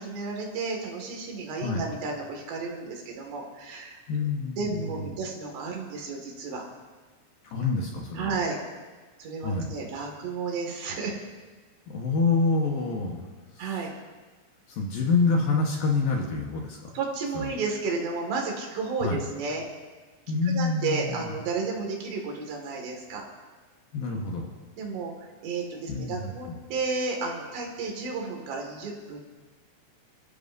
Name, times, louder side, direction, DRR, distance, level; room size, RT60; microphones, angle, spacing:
voice 1, 0.0-4.3 4.6-6.6 8.1-8.6 9.2-11.1 13.6-13.9 16.9-19.7 20.4-23.3 24.8-29.2, right 4 dB, 70° right, 0 dB, 4.2 m, -32 dB
voice 2, 4.1-5.1 7.5-8.4 9.4-9.7 11.9-13.3 13.6-13.8 14.7-16.9 17.3-17.5 19.0-19.2 20.3-21.3 23.9-24.5 25.9-26.6, left 4 dB, 65° left, 0 dB, 2.5 m, -27 dB
29.0 x 13.5 x 2.7 m, 1.3 s
omnidirectional pair, 5.2 m